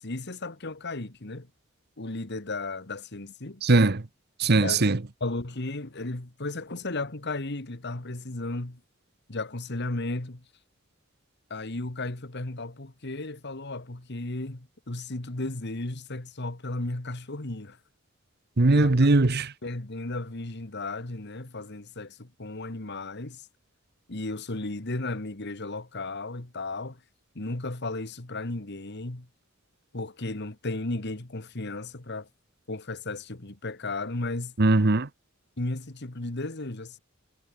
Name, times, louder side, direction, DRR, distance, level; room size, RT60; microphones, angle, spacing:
voice 1, 0.0-1.5 2.0-3.6 4.6-5.0 5.2-8.8 9.3-10.4 11.5-17.8 18.7-18.9 19.6-23.4 24.1-27.0 27.4-29.3 29.9-32.3 32.7-34.5 35.6-37.0, left 2 dB, 55° left, 1.9 m, -34 dB
voice 2, 3.6-4.0 4.4-5.0 18.6-19.5 34.6-35.1, right 2 dB, 50° right, 1.0 m, -20 dB
head